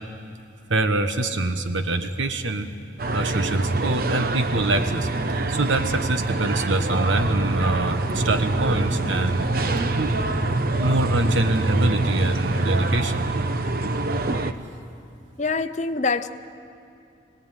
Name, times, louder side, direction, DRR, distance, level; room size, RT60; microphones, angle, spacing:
voice 1, 0.7-2.7 3.1-5.1 5.5-9.5 10.0-10.1 10.8-13.3, right 2 dB, 80° right, 8 dB, 1.3 m, -24 dB
sound 1, 3.0-14.5, right 2 dB, 50° right, 1.0 m, -25 dB
voice 2, 15.4-16.3, left 4 dB, 35° left, 9 dB, 0.8 m, -24 dB
26.5 x 18.5 x 9.2 m, 2.6 s
head